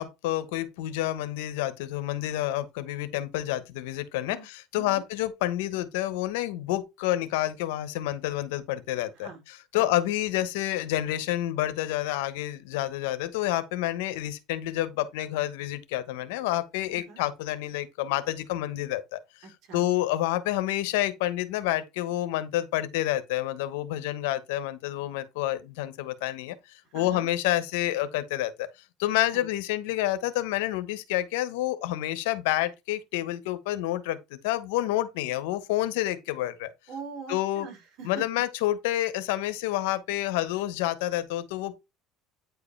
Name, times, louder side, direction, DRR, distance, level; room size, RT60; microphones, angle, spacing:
voice 1, 0.0-19.2 19.7-28.7 29.0-36.7 37.3-37.7 38.0-41.7, left 14 dB, 90° left, 1.1 m, -29 dB
voice 2, 16.9-17.2 19.4-19.8 26.9-27.3 29.1-29.4 36.9-38.2, right 5 dB, 55° right, 4.1 m, -42 dB
9.3 x 4.8 x 3.3 m
cardioid pair, 125°, 0 cm